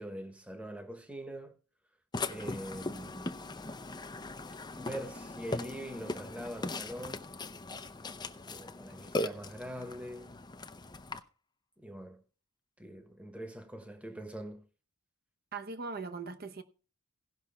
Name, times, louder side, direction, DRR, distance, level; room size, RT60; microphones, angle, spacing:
voice 1, 0.0-1.5 2.2-3.5 4.8-7.3 8.5-10.4 11.8-12.2 12.8-14.6, right 1 dB, 5° right, 1.2 m, -43 dB
Burping eructation, 2.1-11.2, left 2 dB, 20° left, 0.6 m, -39 dB
voice 2, 15.5-16.6, right 4 dB, 45° right, 0.9 m, -40 dB
17.5 x 6.1 x 4.2 m
head